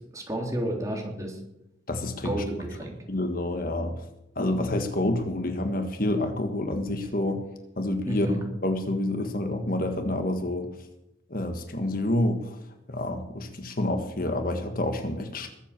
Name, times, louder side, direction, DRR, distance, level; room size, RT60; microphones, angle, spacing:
voice 1, 0.0-1.4 2.2-2.9 8.1-8.4, right 1 dB, 20° right, 0 dB, 3.4 m, -31 dB
voice 2, 1.9-2.4 3.1-4.0 4.3-7.4 7.8-8.3 8.6-10.7 11.3-12.6 12.9-15.5, left 1 dB, 50° left, 6 dB, 1.6 m, -28 dB
21.5 x 8.2 x 7.5 m, 0.86 s
head